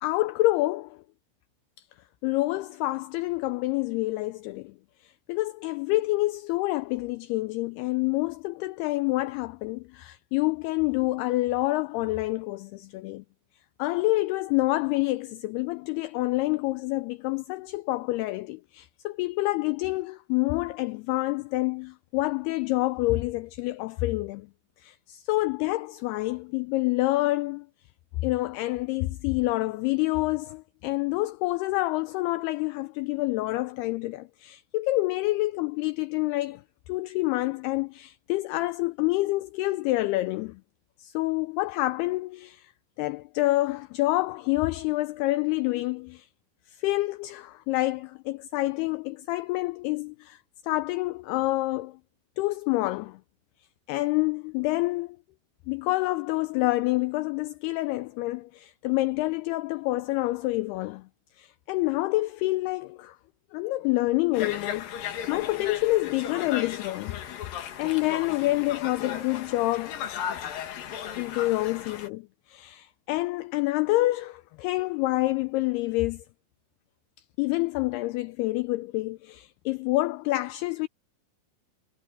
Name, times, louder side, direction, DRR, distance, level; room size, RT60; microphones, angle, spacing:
voice 1, 0.0-1.0 2.2-4.8 5.0-13.2 13.8-24.5 24.8-27.7 28.2-36.6 36.9-40.6 41.0-42.7 43.0-46.3 46.7-52.0 52.4-53.2 53.9-55.2 55.7-61.1 61.4-63.2 63.5-67.2 67.8-70.0 71.2-76.2 77.4-80.9, left 19 dB, 85° left, 2.3 m, -27 dB
Conversation, 64.3-72.1, left 9 dB, 60° left, 3.1 m, -36 dB
omnidirectional pair, 5.1 m